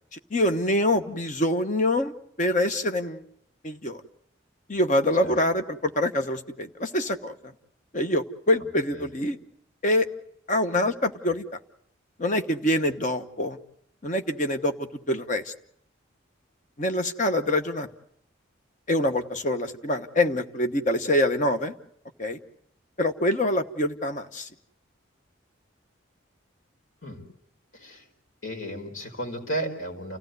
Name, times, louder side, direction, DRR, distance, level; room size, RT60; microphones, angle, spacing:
voice 1, 0.3-3.2 3.6-4.0 4.7-7.3 7.9-9.4 9.8-10.1 10.5-11.4 12.2-13.6 14.0-15.5 16.8-17.9 18.9-21.7 22.2-22.4 23.0-24.5, left 1 dB, 40° left, 7 dB, 1.1 m, -25 dB
voice 2, 27.7-28.0 28.4-30.2, right 1 dB, 90° left, 2 dB, 4.9 m, -33 dB
29.0 x 16.0 x 8.0 m, 0.71 s
head